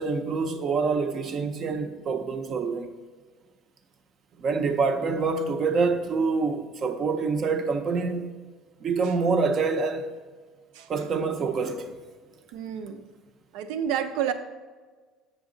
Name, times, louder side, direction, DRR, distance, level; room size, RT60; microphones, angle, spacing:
voice 1, 0.0-2.9 4.4-8.3 8.8-10.1 10.9-11.9, right 4 dB, 30° right, 0.6 m, -26 dB
voice 2, 12.5-13.0 13.5-14.3, right 9 dB, 75° right, 0.6 m, -29 dB
8.0 x 6.0 x 3.8 m
cardioid pair, 175°, 0 cm